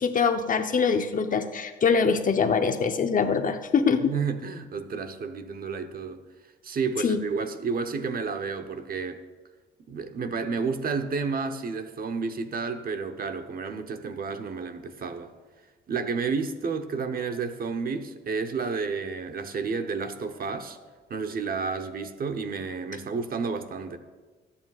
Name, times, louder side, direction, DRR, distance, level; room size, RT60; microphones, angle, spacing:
voice 1, 0.0-4.1 7.0-7.2, left 5 dB, 40° left, 0.8 m, -23 dB
voice 2, 4.0-6.2 6.6-9.2 9.9-15.3 15.9-20.8 21.1-24.0, right 5 dB, 45° right, 0.9 m, -31 dB
21.0 x 8.5 x 2.4 m
cardioid pair, 90°, 20 cm